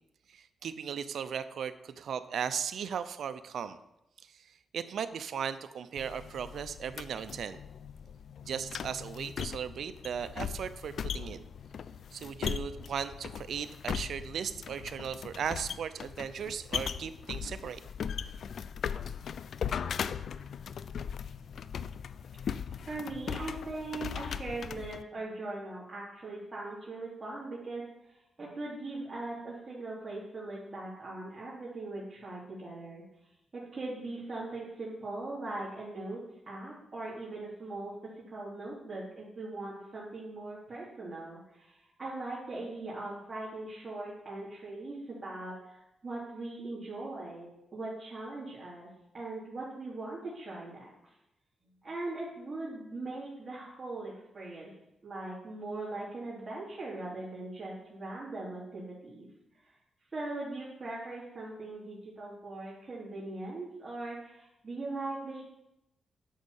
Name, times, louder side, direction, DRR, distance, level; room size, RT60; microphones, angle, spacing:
voice 1, 0.3-3.8 4.3-4.5 4.7-7.6 8.4-11.5 12.1-17.8, right 7 dB, 75° right, 12 dB, 0.7 m, -37 dB
sound 1, 6.0-25.0, left 7 dB, 70° left, 0.4 m, -39 dB
voice 2, 22.9-33.0 33.5-37.9 38.3-48.9 49.1-50.9 51.8-54.7 55.0-59.3 60.1-65.4, right 2 dB, 35° right, -7 dB, 3.8 m, -40 dB
10.5 x 6.5 x 7.2 m, 0.88 s
cardioid pair, 75°, 0 cm